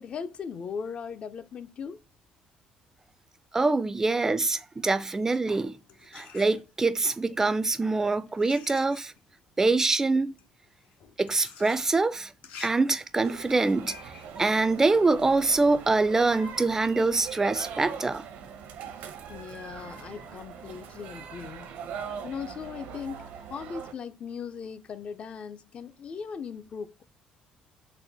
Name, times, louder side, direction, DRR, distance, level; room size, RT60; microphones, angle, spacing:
voice 1, 0.0-2.0 19.3-21.7 22.2-27.0, left 6 dB, 45° left, 0.4 m, -38 dB
voice 2, 3.5-5.8 6.1-9.1 9.6-10.3 11.2-12.3 12.6-14.0 14.4-18.2, right 3 dB, 20° right, 0.3 m, -24 dB
sound 1, 5.1-7.0 7.8-15.7, left 7 dB, 80° left, 0.7 m, -50 dB
sound 2, 13.2-23.9, right 7 dB, 80° right, 0.7 m, -42 dB
4.0 x 2.1 x 3.9 m
cardioid pair, 105°, 3 cm